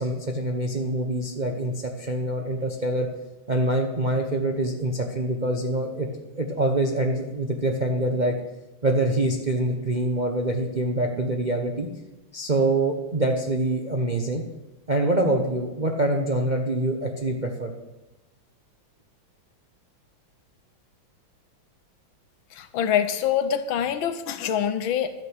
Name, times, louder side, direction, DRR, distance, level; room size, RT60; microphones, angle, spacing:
voice 1, 0.0-3.1 3.5-6.1 6.4-8.3 8.8-11.9 12.3-14.4 14.9-17.7, right 1 dB, 35° right, 2 dB, 0.7 m, -25 dB
voice 2, 22.5-25.1, left 9 dB, 75° left, 10 dB, 1.6 m, -25 dB
12.0 x 8.6 x 6.3 m, 0.98 s
omnidirectional pair, 2.2 m